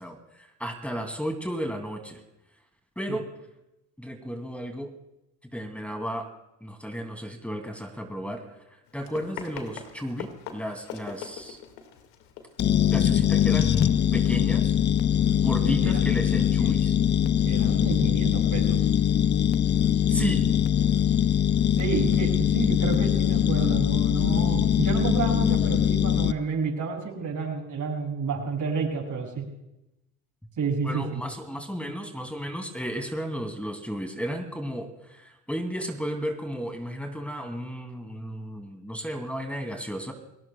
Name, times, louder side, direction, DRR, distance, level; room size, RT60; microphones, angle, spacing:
voice 1, 0.0-2.2 3.0-3.3 4.0-4.9 5.5-6.3 6.6-8.4 8.9-11.6 12.9-14.7 15.4-16.9 20.1-20.5 30.8-40.1, equal, 5° left, 4 dB, 2.6 m, -33 dB
Run, 8.8-14.3, left 8 dB, 75° left, 2.1 m, -43 dB
sound 1, 12.6-26.3, left 9 dB, 25° left, 0.4 m, -22 dB
voice 2, 15.6-16.1 16.6-16.8 17.4-18.8 21.7-29.5 30.6-31.2, right 5 dB, 40° right, 1 dB, 6.2 m, -30 dB
29.0 x 18.5 x 2.3 m, 0.91 s
hypercardioid pair, 80°, 45 cm